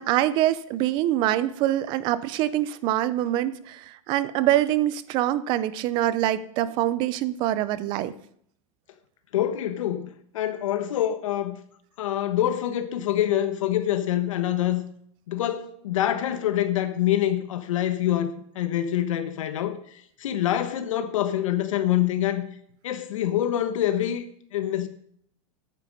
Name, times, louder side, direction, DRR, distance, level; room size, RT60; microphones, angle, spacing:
voice 1, 0.0-8.1, right 13 dB, 30° right, 0.5 m, -24 dB
voice 2, 9.3-11.6 12.0-14.8 15.3-22.5 22.8-24.2 24.5-24.9, left 12 dB, 85° left, 1.1 m, -26 dB
13.0 x 9.2 x 5.2 m
supercardioid pair, 170°, 16 cm